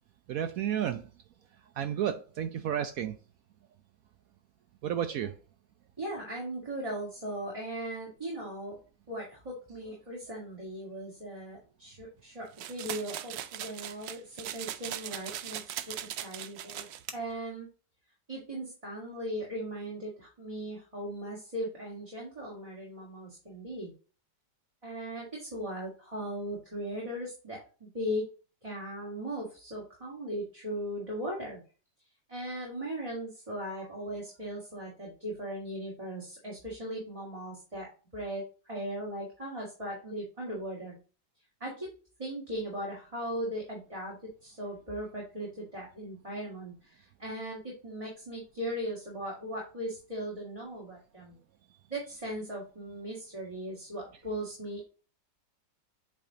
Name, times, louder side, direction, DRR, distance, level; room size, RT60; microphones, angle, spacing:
voice 1, 0.3-1.0 1.8-3.1 4.8-5.3, right 9 dB, 70° right, 9 dB, 0.8 m, -31 dB
voice 2, 6.0-8.8 9.1-16.9 17.1-17.7 18.3-23.9 24.8-28.3 28.6-31.6 32.3-41.0 41.6-41.9 42.2-51.4 51.9-54.9, equal, 20° right, -4 dB, 2.2 m, -38 dB
sound 1, 12.6-17.0, right 11 dB, 90° right, 1.3 m, -39 dB
8.4 x 3.4 x 3.7 m, 0.35 s
omnidirectional pair, 1.9 m